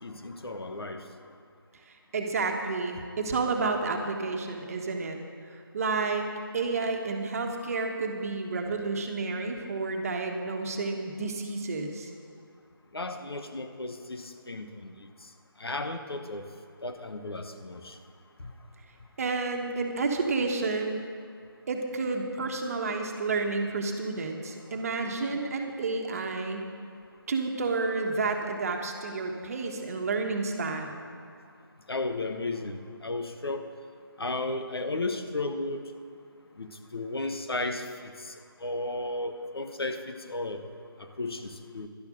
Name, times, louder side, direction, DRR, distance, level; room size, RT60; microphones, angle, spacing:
voice 1, 0.0-1.0 12.9-14.9 15.6-16.5 16.8-18.0 18.4-18.5 31.9-33.6 34.2-35.9 36.6-38.3 38.6-40.6 41.0-41.9, left 2 dB, 85° left, 6 dB, 1.3 m, -34 dB
voice 2, 2.1-5.2 5.7-12.1 19.2-21.0 21.7-26.7 27.3-31.0, right 3 dB, 40° right, 3 dB, 1.3 m, -30 dB
11.5 x 10.5 x 6.3 m, 2.2 s
figure-of-eight pair, 160°, 12 cm